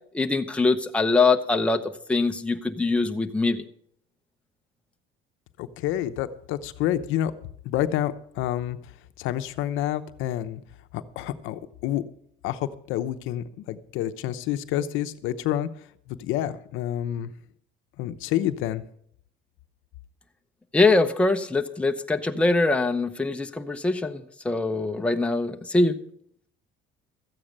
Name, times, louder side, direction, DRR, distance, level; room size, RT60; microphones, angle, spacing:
voice 1, 0.1-3.6 20.7-26.0, left 3 dB, 5° left, 5 dB, 0.8 m, -23 dB
voice 2, 5.6-7.3 7.6-8.8 9.2-10.6 10.9-12.0 12.4-15.7 16.1-17.3 18.0-18.8, left 12 dB, 80° left, 11 dB, 0.8 m, -28 dB
13.5 x 8.8 x 6.6 m, 0.67 s
cardioid pair, 130°, 20 cm